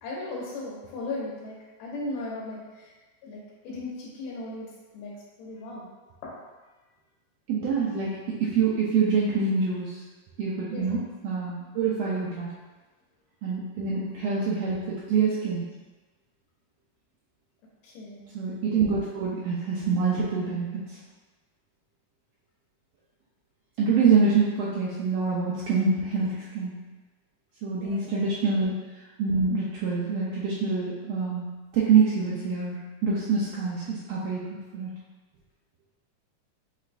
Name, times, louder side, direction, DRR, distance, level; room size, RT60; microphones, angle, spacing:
voice 1, 0.0-2.9 3.2-4.7 4.9-5.1 5.4-5.9 6.2-6.3 10.7-10.8 17.8-18.3 27.8-28.2, left 2 dB, 80° left, -5 dB, 2.3 m, -37 dB
voice 2, 7.5-10.0 10.4-12.5 13.4-15.7 18.3-21.0 23.8-26.7 27.6-28.7 29.2-31.5 31.7-34.4 34.7-35.0, right 5 dB, 85° right, -6 dB, 1.5 m, -25 dB
6.1 x 3.2 x 2.6 m, 1.2 s
omnidirectional pair, 3.6 m